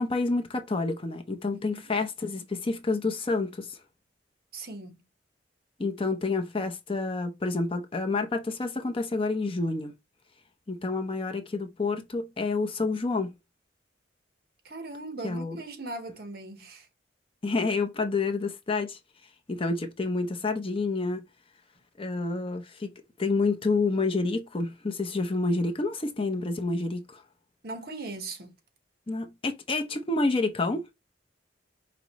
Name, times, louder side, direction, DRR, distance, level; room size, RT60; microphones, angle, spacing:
voice 1, 0.0-3.8 5.8-9.9 10.7-13.3 15.2-15.6 17.4-19.0 19.5-21.2 22.0-22.9 23.2-27.2 29.1-30.8, left 3 dB, 30° left, 0.6 m, -28 dB
voice 2, 4.5-5.0 14.6-16.9 27.6-28.5, right 2 dB, 55° right, 1.0 m, -39 dB
5.1 x 2.9 x 3.0 m
head